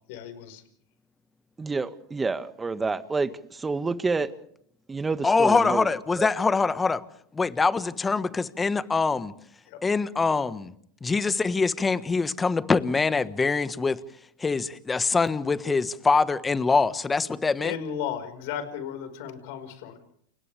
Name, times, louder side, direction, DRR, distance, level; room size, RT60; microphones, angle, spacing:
voice 1, 0.1-0.6 9.7-9.8 17.6-20.1, left 8 dB, 65° left, 4.9 m, -35 dB
voice 2, 1.6-4.3 4.9-5.9 6.2-6.3, right 4 dB, 15° right, 1.8 m, -28 dB
voice 3, 5.2-7.0 7.3-9.3 9.8-10.7 11.0-14.0 14.4-17.7, left 4 dB, 15° left, 1.4 m, -24 dB
30.0 x 29.0 x 3.5 m
hypercardioid pair, 95°, 0 cm